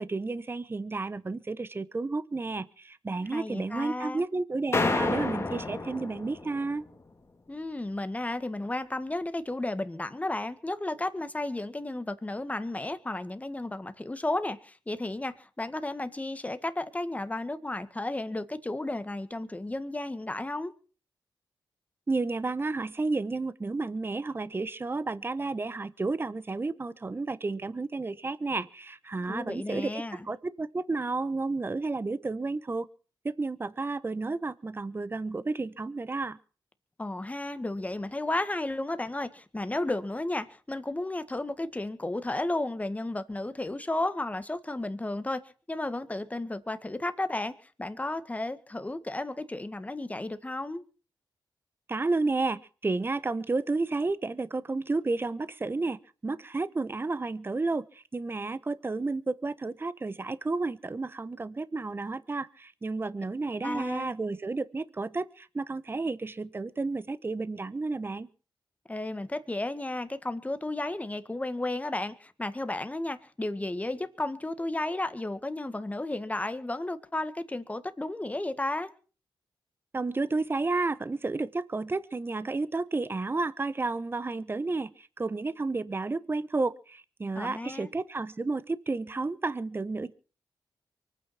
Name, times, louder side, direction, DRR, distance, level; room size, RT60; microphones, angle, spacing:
voice 1, 0.0-6.8 22.1-32.9 33.2-36.4 51.9-68.3 79.9-90.1, right 3 dB, 30° right, 1.0 m, -31 dB
voice 2, 3.3-4.2 7.5-20.7 29.3-30.3 37.0-45.4 45.7-50.8 63.6-64.1 68.9-78.9 87.3-87.9, left 2 dB, 20° left, 1.8 m, -33 dB
sound 1, 4.7-6.7, left 3 dB, 35° left, 2.5 m, -29 dB
24.0 x 9.4 x 5.9 m
cardioid pair, 75°, 8 cm